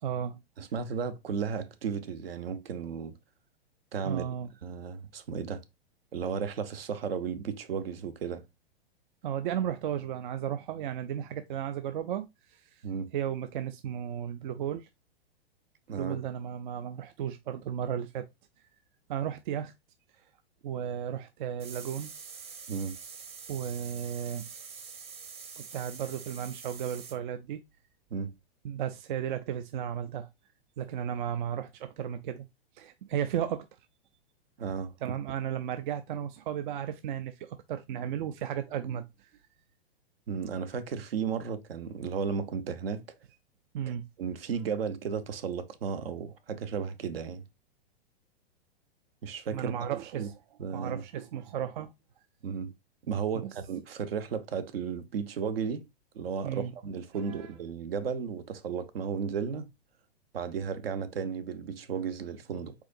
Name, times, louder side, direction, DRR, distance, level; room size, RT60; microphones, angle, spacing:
voice 1, 0.0-0.4 4.0-4.5 9.2-12.8 13.1-14.9 16.0-18.3 19.1-19.7 20.6-22.1 23.5-24.5 25.6-27.6 28.6-30.3 30.8-32.5 32.8-33.7 35.0-39.3 43.7-44.1 49.5-50.3 50.7-51.9 53.4-53.5 56.4-56.7 57.1-57.5, right 9 dB, 50° right, 0.5 m, -34 dB
voice 2, 0.6-3.1 3.9-4.2 4.6-5.6 6.1-8.4 12.8-13.1 15.9-16.2 22.7-23.0 28.1-28.3 34.6-35.1 40.3-43.0 44.2-47.4 49.2-49.7 50.2-50.3 50.6-51.0 52.4-52.7 53.1-55.8 56.1-59.7 60.3-62.7, right 6 dB, 70° right, 0.9 m, -34 dB
sound 1, 21.6-27.2, right 6 dB, 20° right, 0.8 m, -45 dB
4.8 x 3.9 x 2.5 m
figure-of-eight pair, 105°, 31 cm